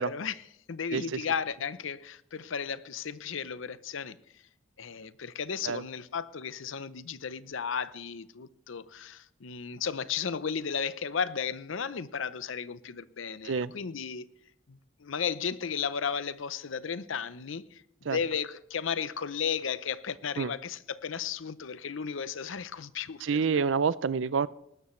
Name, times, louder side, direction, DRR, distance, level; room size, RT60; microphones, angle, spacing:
voice 1, 0.0-4.2 4.8-14.3 14.7-23.6, left 6 dB, 80° left, 0.7 m, -34 dB
voice 2, 23.2-24.5, right 5 dB, 70° right, 0.5 m, -27 dB
19.0 x 12.5 x 3.2 m
head